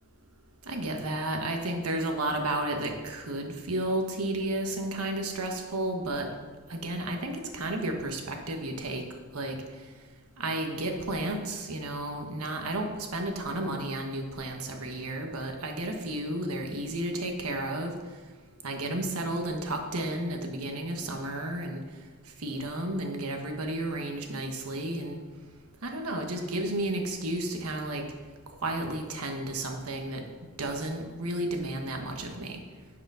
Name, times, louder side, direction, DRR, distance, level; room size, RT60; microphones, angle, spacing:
voice 1, 0.7-6.3 6.7-9.0 9.3-9.6 10.4-17.9 18.6-21.8 22.4-25.2 25.8-28.0 28.6-30.2 30.6-32.6, right 1 dB, 80° right, 3 dB, 1.3 m, -32 dB
9.7 x 5.0 x 5.6 m, 1.4 s
head